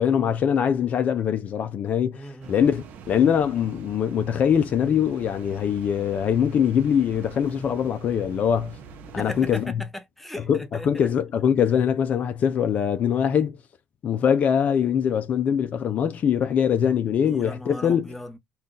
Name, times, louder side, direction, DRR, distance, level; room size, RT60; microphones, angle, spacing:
voice 1, 0.0-8.8 9.1-9.7 10.5-13.6 14.0-18.1, left 8 dB, 50° left, 0.5 m, -23 dB
voice 2, 2.1-2.7 9.2-11.1 17.3-18.4, left 1 dB, 5° left, 0.8 m, -37 dB
sound 1, 2.4-9.7, right 6 dB, 70° right, 0.6 m, -44 dB
2.6 x 2.4 x 3.7 m
supercardioid pair, 85°, 3 cm